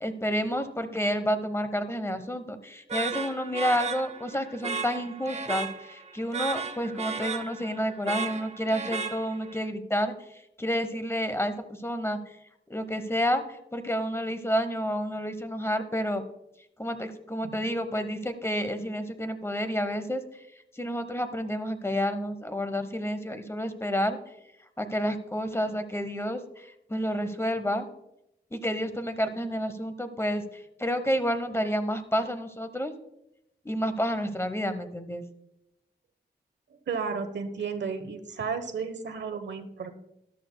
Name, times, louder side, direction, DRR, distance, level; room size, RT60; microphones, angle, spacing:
voice 1, 0.0-12.4 12.7-16.2 16.8-20.2 20.7-24.2 24.8-27.9 28.5-32.9 33.6-35.2, equal, 15° left, 10 dB, 0.9 m, -30 dB
sound 1, 2.9-9.6, right 5 dB, 35° right, 0.7 m, -35 dB
voice 2, 36.9-39.9, right 5 dB, 90° right, 8 dB, 1.0 m, -33 dB
13.0 x 12.0 x 2.2 m, 0.84 s
wide cardioid pair, 110°, 18 cm